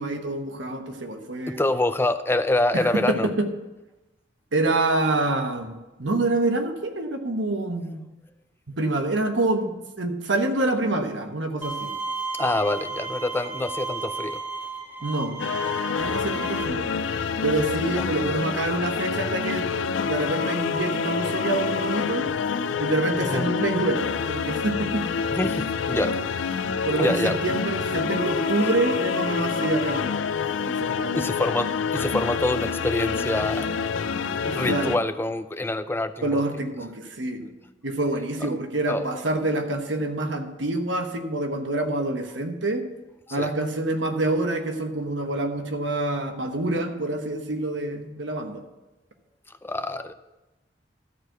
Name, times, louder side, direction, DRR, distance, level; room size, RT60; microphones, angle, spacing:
voice 1, 0.0-1.6 2.7-3.5 4.5-8.0 8.7-11.9 15.0-15.3 16.0-16.9 17.4-19.7 20.0-22.3 22.8-25.0 26.8-30.2 30.7-31.2 34.6-35.0 36.2-37.5 37.8-42.8 43.3-48.6, right 2 dB, 80° right, 5 dB, 1.2 m, -26 dB
voice 2, 1.5-3.3 12.3-14.4 18.0-18.1 23.2-23.5 25.3-26.2 27.0-27.4 31.0-34.0 34.4-36.4 38.4-38.5 38.9-39.2 43.3-43.5 49.5-50.1, left 2 dB, 10° left, 11 dB, 0.5 m, -26 dB
Bowed string instrument, 11.6-16.6, right 4 dB, 10° right, 1.1 m, -33 dB
sound 1, 15.4-35.0, left 6 dB, 90° left, 0.4 m, -27 dB
13.0 x 4.6 x 7.9 m, 1.1 s
head